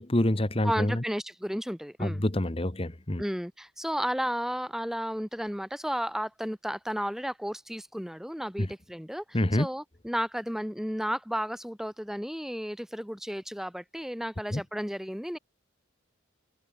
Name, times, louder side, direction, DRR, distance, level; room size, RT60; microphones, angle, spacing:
voice 1, 0.0-1.0 2.0-3.2 8.6-8.7 9.3-9.7 14.5-14.6, left 1 dB, 30° left, 1.3 m, -27 dB
voice 2, 0.6-2.2 3.2-15.4, equal, ahead, 2.8 m, -33 dB
head